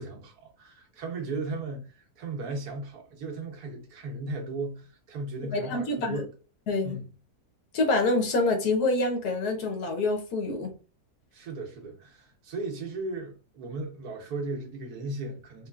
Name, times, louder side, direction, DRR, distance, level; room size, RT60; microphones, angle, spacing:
voice 1, 0.0-6.3 6.8-7.1 11.3-15.7, right 3 dB, 85° right, 1.5 m, -36 dB
voice 2, 5.5-6.2 6.7-7.0 7.7-10.7, left 2 dB, 90° left, 1.4 m, -26 dB
3.6 x 3.2 x 2.3 m
omnidirectional pair, 1.6 m